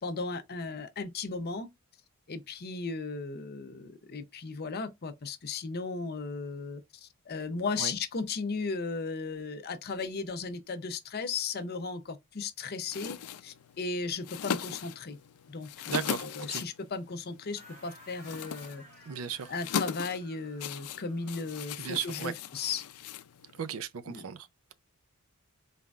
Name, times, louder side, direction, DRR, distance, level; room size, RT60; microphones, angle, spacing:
voice 1, 0.0-1.7 2.3-15.2 15.5-18.8 19.5-22.8 24.1-24.2, left 4 dB, 45° left, 0.6 m, -36 dB
sound 1, 12.9-23.8, left 8 dB, 85° left, 0.4 m, -39 dB
voice 2, 15.9-16.6 19.1-19.5 21.8-22.3 23.6-24.7, right 7 dB, 65° right, 0.5 m, -36 dB
sound 2, 17.6-22.0, right 1 dB, 40° right, 2.9 m, -56 dB
4.1 x 3.7 x 2.3 m
head